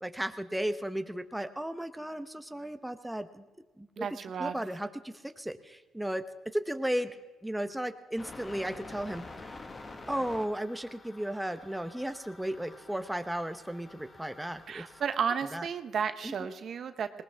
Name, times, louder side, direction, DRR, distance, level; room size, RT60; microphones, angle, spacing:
voice 1, 0.0-3.4 3.8-4.1 4.4-6.2 6.5-7.1 7.4-9.6 10.1-14.8 15.5-15.6 16.2-16.3, right 1 dB, 5° right, 8 dB, 0.9 m, -35 dB
voice 2, 4.0-4.5 14.7-17.1, right 7 dB, 55° right, 10 dB, 0.9 m, -33 dB
sound 1, 8.2-15.2, left 3 dB, 35° left, 1.5 m, -48 dB
19.5 x 19.5 x 3.5 m, 1.2 s
cardioid pair, 90°, 0 cm